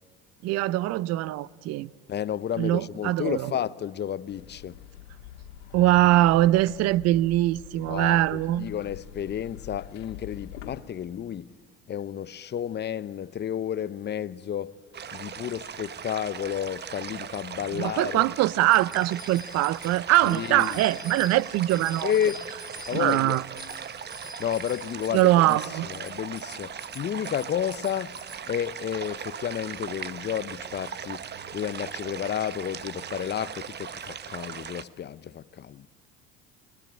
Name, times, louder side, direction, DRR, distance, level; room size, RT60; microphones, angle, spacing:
voice 1, 0.4-1.9 2.6-3.5 5.7-8.7 17.7-22.1 22.9-23.4 25.1-25.9, right 15 dB, 60° right, 0.7 m, -22 dB
voice 2, 2.1-4.8 7.9-11.5 11.9-14.8 15.1-18.3 20.2-20.8 22.0-22.4 22.9-23.4 24.4-25.6 25.8-28.2 28.4-31.2 31.5-35.9, left 9 dB, 35° left, 0.8 m, -31 dB
sound 1, 4.3-10.8, left 12 dB, 80° left, 2.2 m, -45 dB
sound 2, 14.9-34.8, right 7 dB, 35° right, 1.2 m, -39 dB
Bicycle bell, 18.7-28.4, left 1 dB, 15° right, 5.7 m, -46 dB
29.5 x 22.5 x 8.9 m
hypercardioid pair, 75°, 29 cm